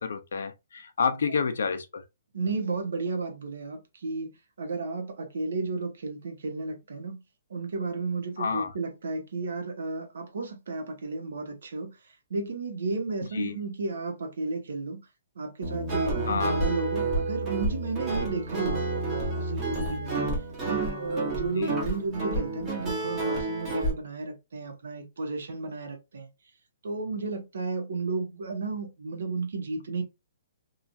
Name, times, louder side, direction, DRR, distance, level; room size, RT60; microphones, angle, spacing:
voice 1, 0.0-2.0 8.4-8.7 13.3-13.6 16.3-16.5 21.6-21.7, left 5 dB, 75° left, 0.5 m, -29 dB
voice 2, 2.3-4.3 4.6-7.2 7.5-15.1 15.3-26.3 26.8-30.0, right 3 dB, 75° right, 0.9 m, -33 dB
Guitar, 15.6-23.9, right 2 dB, 15° right, 0.9 m, -30 dB
2.9 x 2.4 x 2.6 m
hypercardioid pair, 175°, 0 cm